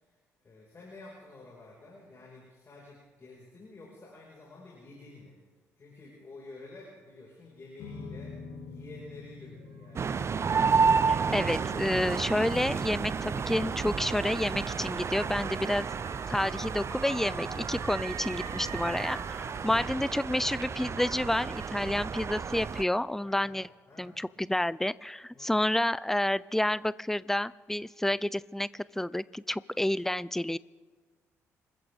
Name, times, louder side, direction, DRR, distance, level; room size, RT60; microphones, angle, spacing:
voice 1, 0.4-5.4 5.8-8.4 8.6-10.1 18.5-18.8 19.5-19.8 23.2-23.6 23.9-24.2 25.3-25.7, left 2 dB, 35° left, -4 dB, 5.3 m, -50 dB
sound 1, 7.8-20.3, left 4 dB, 65° left, 3.1 m, -50 dB
sound 2, 8.5-13.3 14.1-20.7 21.0-21.7, right 7 dB, 55° right, 1.6 m, -46 dB
sound 3, 10.0-22.8, right 5 dB, 35° right, 0.7 m, -31 dB
voice 2, 11.1-15.9 16.3-23.7 24.0-30.6, left 1 dB, 5° left, 20 dB, 0.5 m, -29 dB
27.5 x 14.5 x 3.6 m, 1.4 s
figure-of-eight pair, 45°, 7 cm